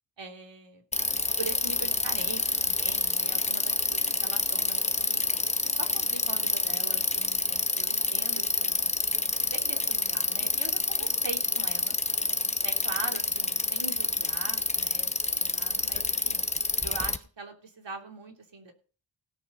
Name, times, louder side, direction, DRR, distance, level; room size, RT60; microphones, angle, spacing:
voice 1, 0.2-0.8 1.4-5.2 5.6-8.9 9.4-12.0 12.6-16.4 16.8-18.7, right 4 dB, 65° right, 2 dB, 3.1 m, -42 dB
Bicycle, 0.9-17.2, left 3 dB, 15° left, 0.8 m, -28 dB
17.5 x 6.5 x 5.5 m, 0.38 s
wide cardioid pair, 80°, 46 cm